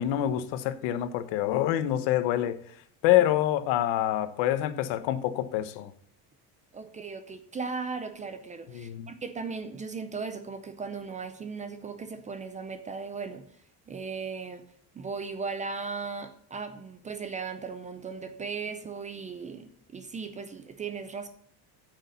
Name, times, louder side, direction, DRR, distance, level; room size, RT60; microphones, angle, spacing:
voice 1, 0.0-2.6 3.0-5.9 8.7-9.1, left 12 dB, 75° left, 12 dB, 1.1 m, -26 dB
voice 2, 6.7-13.4 13.9-14.6 14.9-21.3, right 5 dB, 20° right, 10 dB, 0.4 m, -37 dB
8.3 x 6.4 x 8.0 m, 0.64 s
cardioid pair, 180°, 43 cm